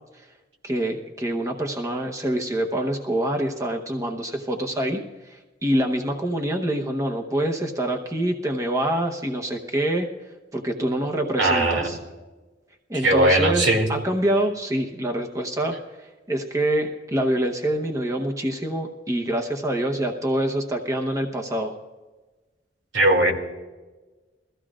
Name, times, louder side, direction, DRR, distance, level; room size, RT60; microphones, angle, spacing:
voice 1, 0.6-10.1 10.5-12.0 12.9-21.7, right 1 dB, 20° right, 2 dB, 0.9 m, -26 dB
voice 2, 11.4-11.9 13.0-13.9 22.9-23.3, right 1 dB, 85° right, 2 dB, 2.5 m, -19 dB
22.0 x 15.0 x 2.5 m, 1.2 s
head